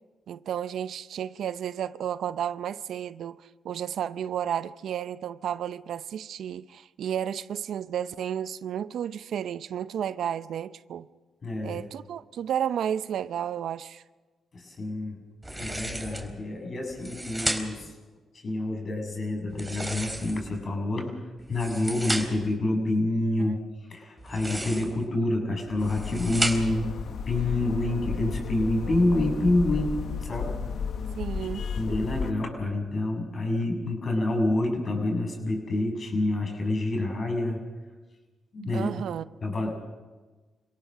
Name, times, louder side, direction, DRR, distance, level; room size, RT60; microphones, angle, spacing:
voice 1, 0.3-11.1 11.6-14.0 23.4-23.5 31.1-31.6 38.7-39.3, right 9 dB, 75° right, 0.6 m, -32 dB
voice 2, 11.4-11.8 14.5-15.2 15.5-18.0 18.3-26.9 27.3-30.6 31.7-37.6 38.5-38.9 39.4-39.8, left 2 dB, 50° left, 7.4 m, -28 dB
sound 1, 15.4-16.3 16.9-17.9 19.5-20.6 21.4-22.5 24.2-25.0 25.7-26.9, right 1 dB, 10° right, 3.9 m, -33 dB
sound 2, 25.8-32.3, left 6 dB, 70° left, 1.1 m, -33 dB
27.0 x 18.0 x 6.6 m
supercardioid pair, 55°, 0 cm